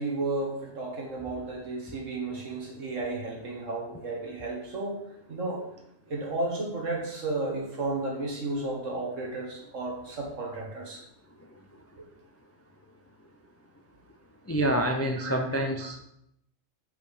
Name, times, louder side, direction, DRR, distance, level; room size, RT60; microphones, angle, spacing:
voice 1, 0.0-5.0 5.3-5.6 6.1-11.0 15.2-15.4 15.8-16.0, right 2 dB, 80° right, -1 dB, 1.9 m, -33 dB
voice 2, 14.5-16.0, right 1 dB, 25° left, 3 dB, 0.3 m, -27 dB
5.7 x 4.5 x 4.9 m, 0.76 s
omnidirectional pair, 1.3 m